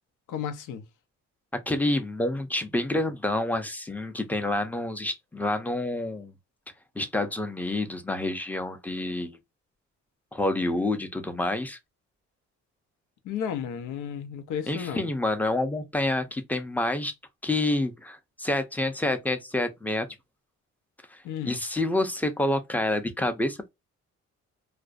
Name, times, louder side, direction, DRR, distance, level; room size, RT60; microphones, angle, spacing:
voice 1, 0.3-0.8 13.2-15.1 21.2-21.6, left 8 dB, 80° left, 0.6 m, -33 dB
voice 2, 1.7-6.3 7.0-9.4 10.3-11.8 14.7-17.1 17.4-20.1 21.1-23.7, left 2 dB, 5° left, 0.5 m, -28 dB
2.5 x 2.1 x 2.3 m
cardioid pair, 90°, 30 cm